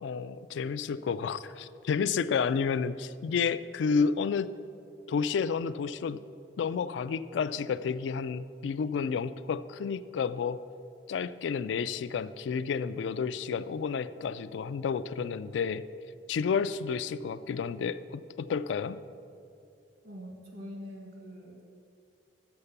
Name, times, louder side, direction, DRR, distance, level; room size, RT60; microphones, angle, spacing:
voice 1, 0.0-4.5 5.1-6.2 6.6-10.6 11.1-15.8 16.3-19.0, left 6 dB, 85° left, 14 dB, 0.3 m, -31 dB
voice 2, 20.0-21.6, equal, 60° right, 0 dB, 1.8 m, -44 dB
7.0 x 6.5 x 6.7 m, 2.6 s
head